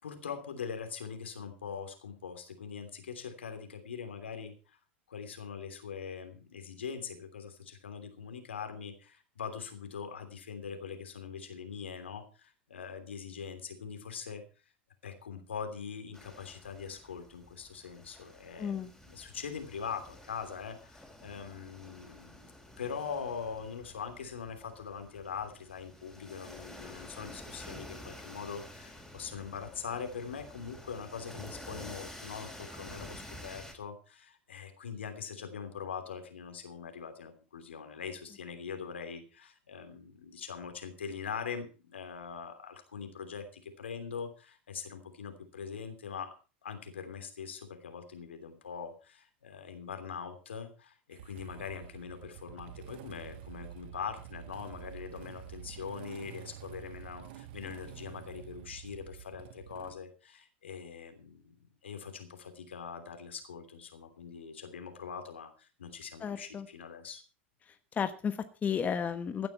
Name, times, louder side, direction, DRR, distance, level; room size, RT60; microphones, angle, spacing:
voice 1, 0.0-4.8 5.1-14.4 15.0-22.5 22.8-46.3 46.6-61.6 61.8-67.2, left 6 dB, 80° left, 6 dB, 3.0 m, -42 dB
sound 1, 16.1-33.7, left 1 dB, 5° left, 5.3 m, -50 dB
voice 2, 18.6-18.9 66.2-66.7 67.9-69.5, left 7 dB, 25° left, 9 dB, 1.1 m, -33 dB
Motorcycle / Engine starting, 51.1-60.0, right 11 dB, 60° right, 1.1 m, -48 dB
16.0 x 11.0 x 4.5 m, 0.35 s
hypercardioid pair, 90°, 6 cm